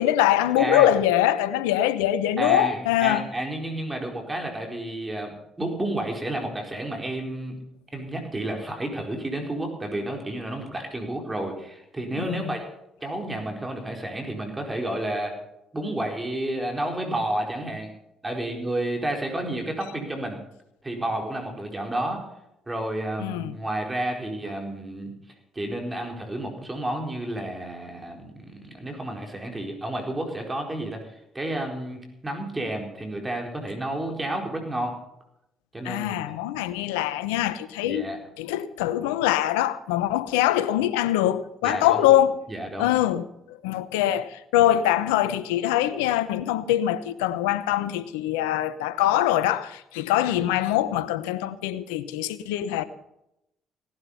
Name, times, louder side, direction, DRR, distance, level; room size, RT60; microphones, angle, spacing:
voice 1, 0.0-3.3 12.2-12.6 23.2-23.6 35.8-38.1 38.4-42.4 42.8-52.8, left 13 dB, 85° left, 0.9 m, -23 dB
voice 2, 0.6-0.9 2.4-7.5 7.9-12.6 13.0-15.3 15.7-17.9 18.2-20.4 20.8-22.2 22.7-25.1 25.5-35.0 35.7-36.3 37.8-38.2 41.6-42.0 42.5-42.9, right 1 dB, 20° right, 4.4 m, -31 dB
17.5 x 11.5 x 5.6 m
hypercardioid pair, 55°, 0 cm